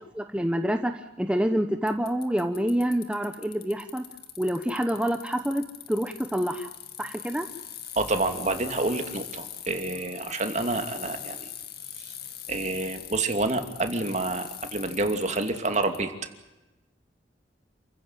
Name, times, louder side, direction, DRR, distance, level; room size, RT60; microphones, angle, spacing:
voice 1, 0.1-4.1 4.4-6.7 7.0-7.5, equal, 5° right, 6 dB, 1.0 m, -27 dB
Bicycle, 1.9-16.0, left 10 dB, 60° left, 2.2 m, -41 dB
voice 2, 8.0-11.5 12.0-12.1 12.5-16.1, right 2 dB, 40° right, 6 dB, 2.6 m, -28 dB
28.5 x 15.5 x 9.2 m, 1.0 s
head